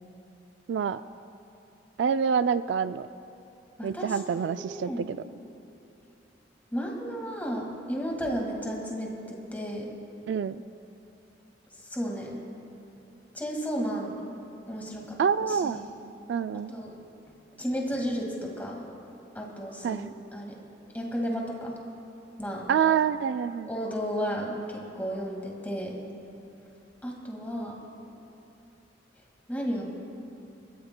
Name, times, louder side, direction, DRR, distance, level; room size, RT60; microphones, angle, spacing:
voice 1, 0.7-1.0 2.0-3.1 3.8-5.2 10.3-10.6 15.2-15.8 16.3-16.7 19.8-20.1 22.7-23.7, right 7 dB, 70° right, 13 dB, 0.3 m, -26 dB
voice 2, 4.4-5.1 6.7-9.9 11.9-12.4 13.3-14.2 14.7-15.2 15.5-15.9 16.7-16.9 17.6-18.8 19.4-20.6 20.9-21.7 22.4-22.7 23.7-26.0 27.0-27.8 29.5-29.9, equal, 10° left, -1 dB, 1.9 m, -33 dB
28.5 x 13.5 x 2.2 m, 2.8 s
head